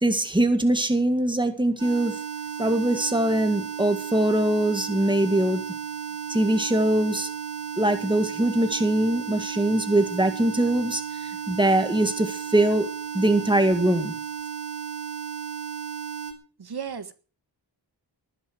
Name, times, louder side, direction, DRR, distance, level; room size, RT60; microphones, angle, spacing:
voice 1, 0.0-2.2 2.6-5.6 6.3-7.3 7.8-12.9 13.1-14.1, right 1 dB, 10° right, 2.0 m, -22 dB
sound 1, 1.8-16.3, right 8 dB, 35° right, 4.2 m, -34 dB
voice 2, 16.6-17.1, right 7 dB, 55° right, 1.6 m, -34 dB
20.0 x 10.0 x 6.4 m
wide cardioid pair, 145°, 45 cm